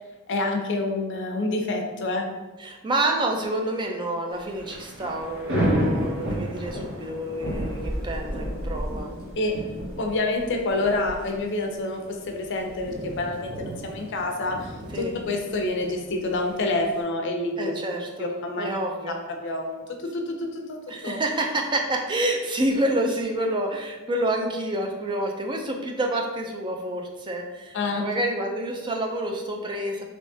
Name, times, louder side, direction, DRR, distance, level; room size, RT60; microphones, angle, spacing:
voice 1, 0.3-2.3 9.4-9.5 10.0-17.7 18.2-18.7 19.1-21.2 27.7-28.0, left 2 dB, 55° left, 2 dB, 0.5 m, -28 dB
voice 2, 2.6-9.1 14.9-15.1 17.6-18.3 18.6-19.2 20.9-30.0, right 1 dB, 20° right, 2 dB, 0.3 m, -28 dB
Thunder / Rain, 4.4-17.0, equal, 65° right, 1.0 m, -32 dB
3.4 x 3.0 x 2.7 m, 1.3 s
head